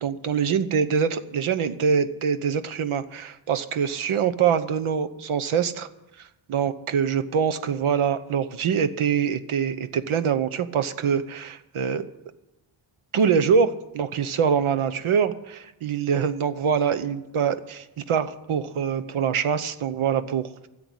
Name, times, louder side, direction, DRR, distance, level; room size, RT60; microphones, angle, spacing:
voice 1, 0.0-5.9 6.2-12.1 13.1-20.5, right 7 dB, 75° right, 13 dB, 1.0 m, -24 dB
14.5 x 7.9 x 9.7 m, 0.96 s
wide cardioid pair, 140°, 49 cm